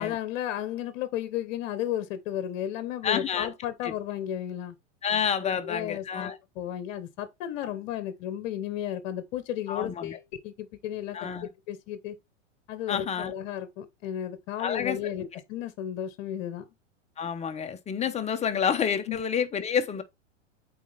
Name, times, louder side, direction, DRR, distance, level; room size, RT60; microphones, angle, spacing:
voice 1, 0.0-4.7 5.4-11.3 11.7-12.2 12.7-16.7 19.1-19.2, left 11 dB, 50° left, 1.0 m, -33 dB
voice 2, 3.0-3.5 3.8-3.9 5.0-6.4 9.7-10.2 11.1-11.5 12.9-13.3 14.6-15.3 17.2-20.0, left 7 dB, 15° left, 0.8 m, -29 dB
8.3 x 4.3 x 3.4 m
hypercardioid pair, 115°, 38 cm